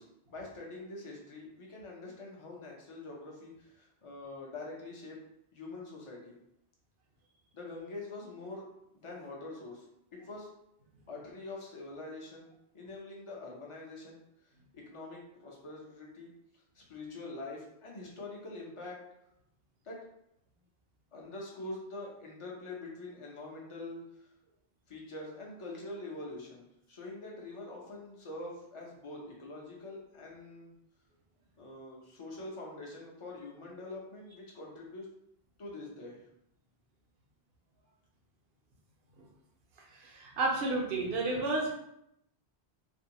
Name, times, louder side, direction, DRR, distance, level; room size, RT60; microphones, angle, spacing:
voice 1, 0.0-5.2 5.5-6.4 7.5-8.7 9.0-9.8 10.1-10.5 11.1-14.2 14.7-16.3 16.7-19.0 19.8-20.0 21.1-24.3 24.9-30.7 31.6-35.1 35.6-36.2, left 2 dB, 35° left, -2 dB, 0.6 m, -45 dB
voice 2, 39.9-41.7, right 2 dB, 70° right, -2 dB, 0.9 m, -31 dB
2.5 x 2.2 x 2.8 m, 0.77 s
omnidirectional pair, 1.1 m